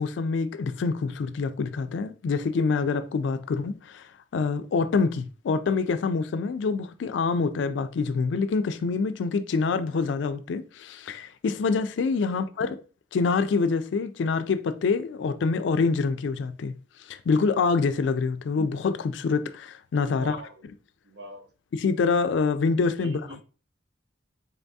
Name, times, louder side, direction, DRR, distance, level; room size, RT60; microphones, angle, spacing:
voice 1, 0.0-12.8 13.1-16.7 17.1-20.4 21.7-23.2, left 4 dB, 70° left, 0.3 m, -26 dB
voice 2, 20.1-20.6 21.0-21.5 23.0-23.4, right 2 dB, 60° right, 0.7 m, -42 dB
3.9 x 3.4 x 2.6 m
head